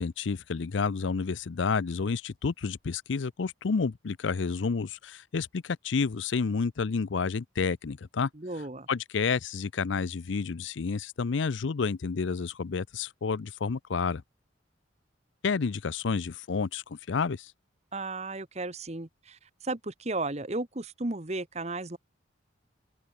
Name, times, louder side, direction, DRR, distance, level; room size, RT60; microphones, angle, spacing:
voice 1, 0.0-8.3 8.9-14.2 15.4-17.5, left 5 dB, 75° left, 0.5 m, -30 dB
voice 2, 8.3-8.9 17.9-22.0, right 2 dB, 35° right, 1.3 m, -34 dB
open air
head